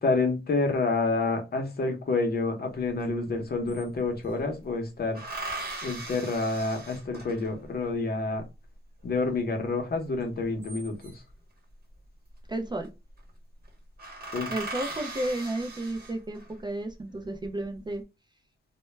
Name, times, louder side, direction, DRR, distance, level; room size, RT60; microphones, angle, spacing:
voice 1, 0.0-5.2 5.8-8.4 9.0-11.2 14.3-14.5, left 3 dB, 50° left, 4 dB, 0.7 m, -28 dB
sound 1, 3.0-3.1 3.3-4.4 5.1-7.7 10.3-11.3 12.5-12.9 13.2-13.3 13.6-13.7 14.0-16.5 17.1-17.8, right 2 dB, 50° right, 0.9 m, -39 dB
voice 2, 12.5-12.9 14.5-18.0, right 1 dB, 20° right, 4 dB, 0.4 m, -32 dB
2.1 x 2.1 x 3.1 m, 0.26 s
wide cardioid pair, 110°, 20 cm